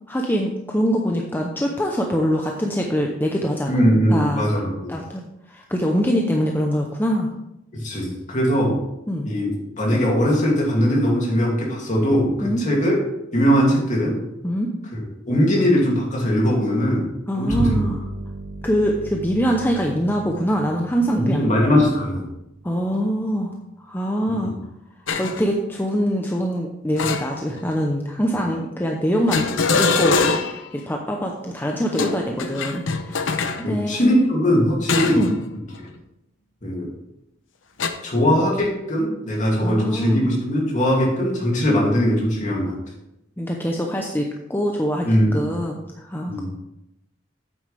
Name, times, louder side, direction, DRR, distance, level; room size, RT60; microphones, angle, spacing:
voice 1, 0.1-3.8 4.1-4.4 4.9-5.2 5.5-7.3 9.1-9.3 12.4-12.6 14.4-14.7 17.3-18.0 18.6-21.5 22.6-23.5 23.8-24.5 25.2-29.5 29.7-33.3 33.6-34.3 35.1-35.4 39.6-40.2 43.4-46.3, equal, 10° left, 1 dB, 0.7 m, -24 dB
voice 2, 3.7-4.9 7.7-8.8 9.2-9.5 9.8-12.3 12.6-12.9 13.3-14.2 14.9-17.1 17.4-17.8 21.2-22.2 33.6-35.2 36.6-36.9 38.0-42.7 45.1-45.4 46.3-46.5, equal, 40° left, -2 dB, 2.6 m, -20 dB
Bowed string instrument, 17.5-23.1, right 2 dB, 70° right, 3.0 m, -33 dB
sound 1, 25.1-25.4 27.0-27.7 29.3-30.7 31.9-33.6 34.9-35.4 35.7-36.0 37.8-37.9, left 4 dB, 80° left, 0.8 m, -23 dB
8.9 x 8.5 x 3.4 m, 0.88 s
head